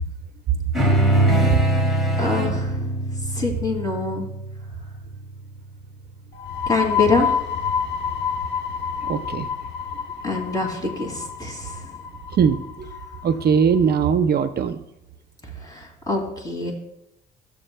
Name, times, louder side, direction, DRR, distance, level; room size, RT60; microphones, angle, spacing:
sound 1, 0.7-5.5, right 1 dB, ahead, 2.2 m, -22 dB
voice 1, 2.2-2.9 3.3-4.3 6.7-7.4 10.2-11.8 15.6-16.7, left 3 dB, 20° left, 1 dB, 2.4 m, -25 dB
sound 2, 6.3-13.8, left 6 dB, 65° left, 1.1 m, -28 dB
voice 2, 9.1-9.5 12.4-12.6 13.2-14.8, right 7 dB, 55° right, 10 dB, 0.5 m, -19 dB
15.0 x 7.0 x 2.2 m, 0.81 s
cardioid pair, 90°, 20 cm